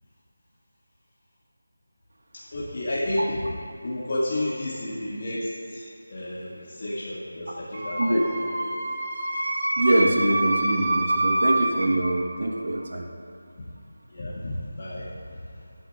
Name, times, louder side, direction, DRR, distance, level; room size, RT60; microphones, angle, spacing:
voice 1, 2.3-3.4 3.8-8.8 14.1-15.4, left 1 dB, 40° left, -9 dB, 2.0 m, -31 dB
Wind instrument woodwind instrument, 7.7-11.9, right 2 dB, 45° right, 2.1 m, -26 dB
voice 2, 9.8-13.0, right 1 dB, 70° right, 1 dB, 1.4 m, -23 dB
16.5 x 9.1 x 2.5 m, 2.4 s
figure-of-eight pair, 175°, 0 cm